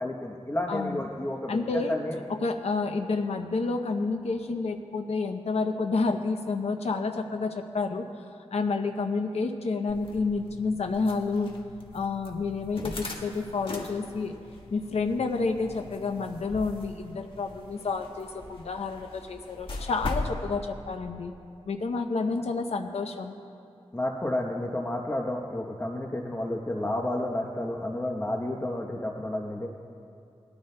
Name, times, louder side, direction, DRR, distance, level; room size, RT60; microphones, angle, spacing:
voice 1, 0.0-2.2 23.9-29.7, left 1 dB, 20° left, 0 dB, 0.9 m, -31 dB
voice 2, 0.7-1.0 1.5-1.9 2.3-8.1 8.5-11.5 11.9-14.3 14.7-21.3 21.7-23.4, left 4 dB, 75° left, 5 dB, 0.6 m, -29 dB
sound 1, 9.9-20.4, left 2 dB, 55° left, 1.3 m, -40 dB
20.0 x 13.0 x 2.2 m, 2.5 s
wide cardioid pair, 85°, 11 cm